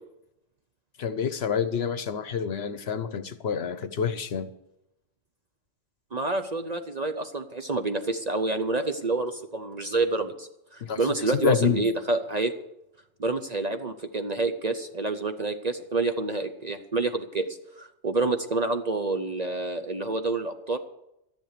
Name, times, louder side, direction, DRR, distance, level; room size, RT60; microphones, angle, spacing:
voice 1, 1.0-4.5 10.8-11.0 11.3-11.8, left 7 dB, 60° left, 12 dB, 0.9 m, -27 dB
voice 2, 6.1-12.5 13.2-20.8, right 3 dB, 40° right, 7 dB, 0.8 m, -28 dB
13.0 x 11.0 x 6.6 m, 0.86 s
omnidirectional pair, 1.3 m